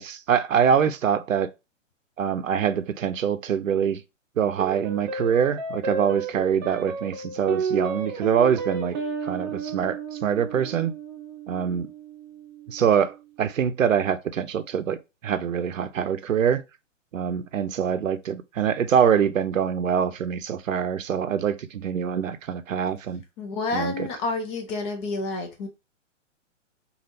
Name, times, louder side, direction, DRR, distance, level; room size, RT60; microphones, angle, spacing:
voice 1, 0.0-1.5 2.2-4.0 4.4-8.9 9.2-10.9 11.5-11.9 12.7-15.0 15.2-16.6 17.1-23.2 23.7-24.1, right 8 dB, 85° right, 0.6 m, -24 dB
sound 1, 4.6-13.2, right 5 dB, 35° right, 0.7 m, -32 dB
voice 2, 23.4-25.7, left 3 dB, 25° left, 0.5 m, -29 dB
3.3 x 2.4 x 2.6 m
hypercardioid pair, 125°, 38 cm